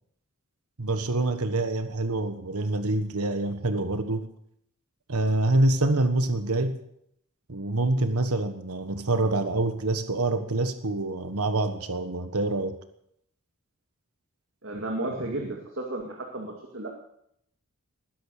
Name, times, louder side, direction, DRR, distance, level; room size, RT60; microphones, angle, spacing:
voice 1, 0.8-4.3 5.1-6.8 7.5-12.8, right 2 dB, 90° right, 9 dB, 1.4 m, -26 dB
voice 2, 14.6-16.9, right 2 dB, 60° right, 0 dB, 2.4 m, -33 dB
20.0 x 10.5 x 6.7 m, 0.73 s
head